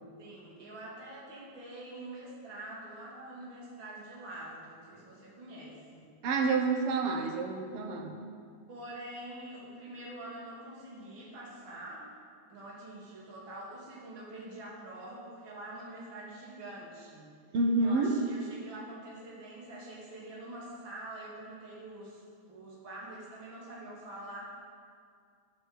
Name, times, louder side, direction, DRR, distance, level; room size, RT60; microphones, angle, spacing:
voice 1, 0.2-6.1 8.7-12.0 12.5-17.3 17.8-24.5, right 1 dB, 40° right, -6 dB, 3.3 m, -45 dB
voice 2, 6.2-8.1 17.5-18.1, right 3 dB, 60° right, 4 dB, 1.7 m, -28 dB
10.5 x 7.4 x 8.0 m, 2.2 s
omnidirectional pair, 3.4 m